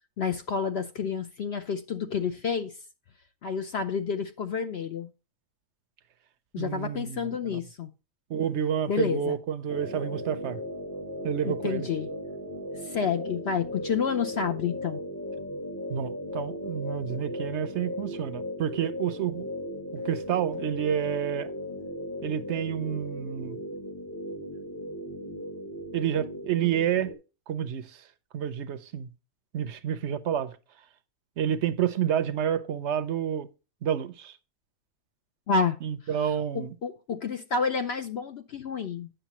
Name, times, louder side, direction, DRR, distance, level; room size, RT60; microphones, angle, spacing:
voice 1, 0.2-2.7 3.4-5.1 6.5-7.9 8.9-9.4 11.4-12.1 12.8-15.0 35.5-35.8 36.2-39.1, left 6 dB, 60° left, 0.7 m, -29 dB
voice 2, 6.6-7.6 8.3-10.6 11.2-11.9 15.9-19.5 20.0-21.5 22.2-23.6 25.9-27.1 27.5-28.0 28.3-29.1 29.5-30.6 31.4-33.5 33.8-34.4 35.8-36.7, right 9 dB, 65° right, 0.8 m, -29 dB
sound 1, 9.7-27.1, equal, 20° left, 0.5 m, -37 dB
9.0 x 6.5 x 2.9 m
omnidirectional pair, 1.5 m